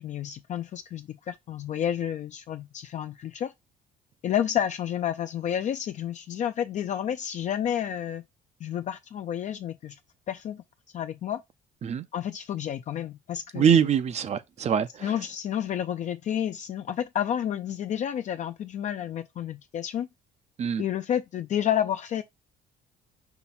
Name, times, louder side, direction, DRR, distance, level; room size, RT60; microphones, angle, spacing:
voice 1, 0.0-3.5 4.2-8.2 8.6-9.9 10.3-10.6 10.9-11.4 12.1-13.9 15.0-20.1 20.8-22.2, left 10 dB, 45° left, 0.4 m, -30 dB
voice 2, 13.5-15.1 20.6-20.8, right 8 dB, 40° right, 0.5 m, -24 dB
5.7 x 2.2 x 4.1 m
cardioid pair, 110°, 17 cm